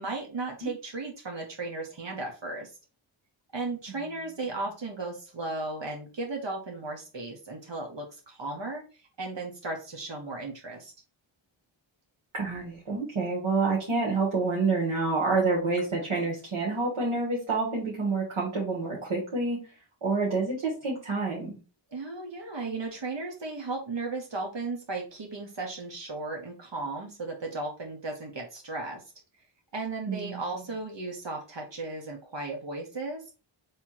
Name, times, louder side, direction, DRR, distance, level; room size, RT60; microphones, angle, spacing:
voice 1, 0.0-2.7 3.5-8.8 9.2-10.9 21.9-29.0 29.7-33.2, right 3 dB, 65° right, 1 dB, 1.2 m, -35 dB
voice 2, 12.3-19.7 20.0-21.6 30.1-30.6, right 3 dB, 85° right, -4 dB, 1.6 m, -28 dB
3.5 x 2.9 x 4.3 m, 0.33 s
wide cardioid pair, 70°, 48 cm